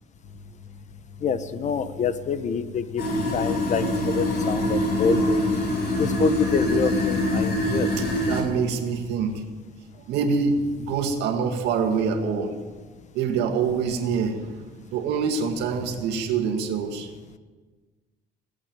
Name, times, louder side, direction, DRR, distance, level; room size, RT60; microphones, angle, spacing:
voice 1, 1.2-3.0 3.3-5.5 6.0-7.9, left 6 dB, 45° left, 12 dB, 1.1 m, -26 dB
sound 1, 3.0-8.4, left 1 dB, 70° left, 6.2 m, -24 dB
voice 2, 8.3-9.4 9.9-12.6 13.1-14.6 14.9-17.1, right 5 dB, 85° right, 4 dB, 2.1 m, -25 dB
18.0 x 8.5 x 9.1 m, 1.3 s
cardioid pair, 110°, 17 cm